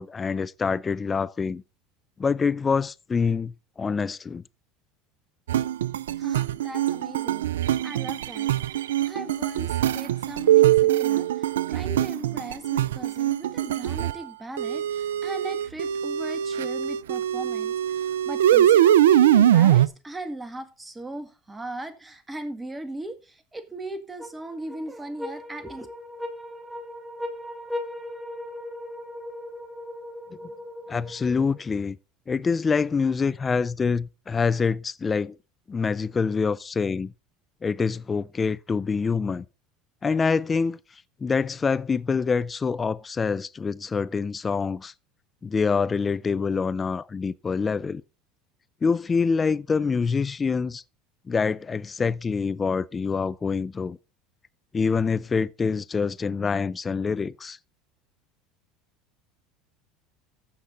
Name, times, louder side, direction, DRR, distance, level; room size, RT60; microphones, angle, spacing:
voice 1, 0.0-1.6 2.2-4.4 30.9-32.0 32.3-35.4 35.7-37.1 37.6-39.4 40.0-40.8 41.2-44.9 45.4-48.0 48.8-50.8 51.3-54.0 54.7-57.6, left 5 dB, 25° left, 0.5 m, -25 dB
sound 1, 5.5-14.2 14.6-19.9, right 11 dB, 85° right, 0.4 m, -22 dB
voice 2, 6.2-25.9, right 1 dB, 15° right, 1.9 m, -38 dB
sound 2, 24.2-31.7, left 1 dB, 10° left, 2.7 m, -38 dB
14.5 x 5.7 x 3.9 m
hypercardioid pair, 85°, 0 cm